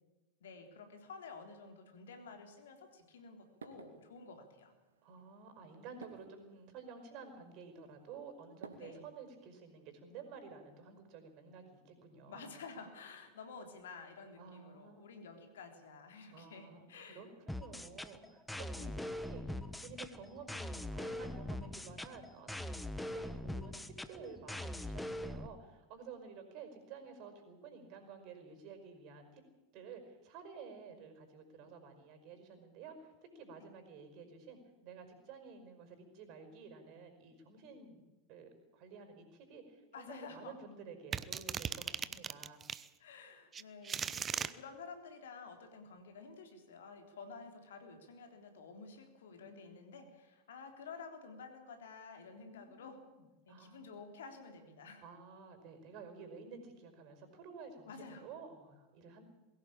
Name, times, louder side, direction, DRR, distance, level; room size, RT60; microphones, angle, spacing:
voice 1, 0.4-4.7 8.8-9.1 12.3-17.3 18.8-19.0 33.6-33.7 39.9-40.6 43.0-53.0 53.5-55.1 57.9-58.3, left 4 dB, 75° left, 6 dB, 3.6 m, -51 dB
sound 1, 2.0-9.4, right 5 dB, 80° right, 2.4 m, -58 dB
voice 2, 5.0-12.5 14.4-15.1 16.3-29.4 29.7-42.6 49.4-50.0 52.4-53.9 55.0-59.2, right 5 dB, 50° right, 8 dB, 5.3 m, -52 dB
sound 2, 17.5-25.5, left 1 dB, 5° left, 1.3 m, -42 dB
sound 3, 41.1-42.9 43.5-44.5, right 7 dB, 25° right, 0.9 m, -38 dB
22.0 x 16.5 x 8.8 m, 1.1 s
hypercardioid pair, 90°, 0 cm